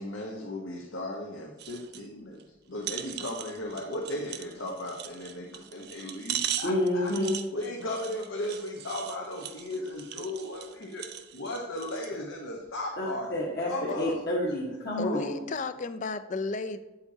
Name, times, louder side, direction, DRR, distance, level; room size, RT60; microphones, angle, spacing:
voice 1, 0.0-7.1 7.5-11.1 11.3-13.4 13.6-14.2, left 1 dB, 85° left, -1 dB, 1.0 m, -36 dB
sound 1, 1.6-2.1 2.4-2.5 2.8-12.2 12.7-12.8, right 11 dB, 55° right, 0.4 m, -39 dB
voice 2, 6.6-7.4 13.0-15.4, left 1 dB, 55° left, -6 dB, 1.3 m, -29 dB
voice 3, 15.0-16.8, left 3 dB, 40° left, 11 dB, 0.4 m, -33 dB
8.2 x 7.9 x 2.8 m, 1.0 s
head